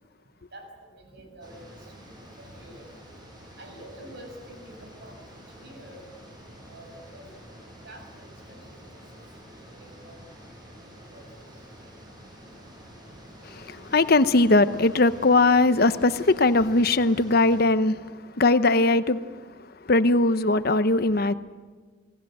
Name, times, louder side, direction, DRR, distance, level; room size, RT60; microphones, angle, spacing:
voice 1, 0.5-1.6 2.4-2.9 3.6-5.2 5.6-6.1 6.7-8.9 9.8-10.2 11.1-11.3, right 1 dB, 60° right, 6.8 m, -47 dB
sound 1, 1.4-17.7, equal, 25° right, 6.4 m, -48 dB
voice 2, 13.4-19.2 19.9-21.3, left 2 dB, 55° left, 0.9 m, -20 dB
28.0 x 19.0 x 7.8 m
head